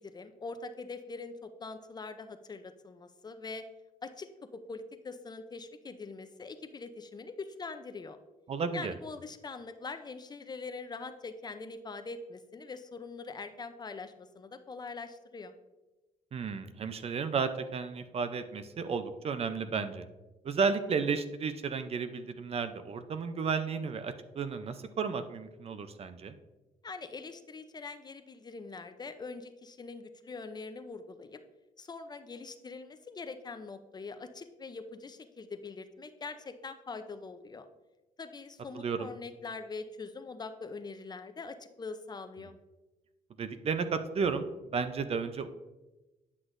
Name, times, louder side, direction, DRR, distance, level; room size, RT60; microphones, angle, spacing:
voice 1, 0.0-3.6 4.0-8.2 8.7-15.5 26.8-31.4 31.8-37.7 38.2-42.5, left 4 dB, 30° left, 9 dB, 0.5 m, -43 dB
voice 2, 8.5-8.9 16.3-20.0 20.4-26.3 38.7-39.1 43.4-44.5 44.7-45.5, right 5 dB, 45° right, 10 dB, 0.6 m, -33 dB
9.6 x 6.1 x 2.6 m, 1.1 s
cardioid pair, 105°, 15 cm